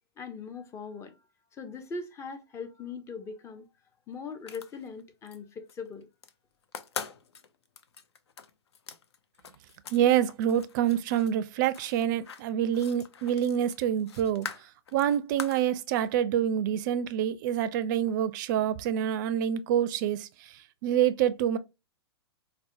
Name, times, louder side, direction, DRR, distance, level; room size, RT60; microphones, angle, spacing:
voice 1, 0.2-1.2 1.5-3.7 4.1-6.1, left 4 dB, 20° left, 0.6 m, -40 dB
sound 1, 4.3-5.4 5.7-6.3 6.6-10.0 10.3-15.7, left 7 dB, 75° left, 0.5 m, -43 dB
voice 2, 9.9-14.5 14.9-21.6, right 10 dB, 45° right, 0.4 m, -27 dB
4.1 x 2.1 x 2.6 m
hypercardioid pair, 115°, 14 cm